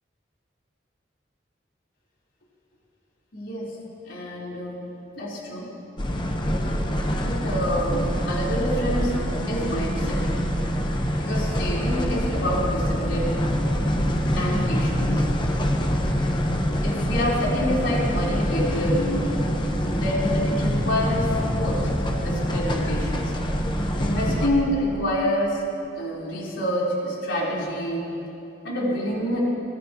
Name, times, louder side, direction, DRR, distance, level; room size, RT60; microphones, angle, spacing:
voice 1, 3.3-3.8 4.1-4.9 5.2-5.7 7.2-9.2 9.5-10.4 11.2-13.4 14.3-15.3 16.8-19.4 19.9-21.9 22.2-23.3 24.0-25.6 26.0-28.1 28.6-29.4, equal, 90° left, -5 dB, 4.0 m, -27 dB
sound 1, 6.0-24.5, equal, 25° left, 1.0 m, -25 dB
23.5 x 18.0 x 3.0 m, 2.9 s
head